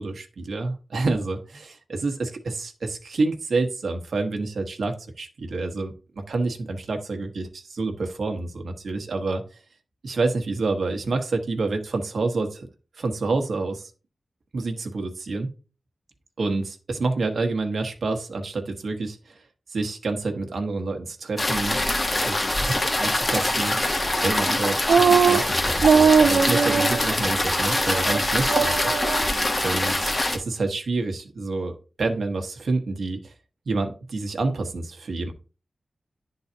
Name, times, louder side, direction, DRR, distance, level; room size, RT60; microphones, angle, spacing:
voice 1, 0.0-9.4 10.0-12.7 13.0-13.9 14.5-15.5 16.4-19.4 19.7-21.8 22.2-22.3 22.8-23.8 24.2-28.8 29.6-33.3 33.7-35.3, right 3 dB, 70° right, 4 dB, 1.1 m, -28 dB
sound 1, 21.4-30.4, left 1 dB, 20° left, 1.0 m, -24 dB
sound 2, 24.9-25.4 25.8-27.0 27.4-27.5 27.9-28.2 28.5-29.3, right 6 dB, 85° right, 0.3 m, -19 dB
10.5 x 3.9 x 2.8 m, 0.34 s
wide cardioid pair, 120°, 0 cm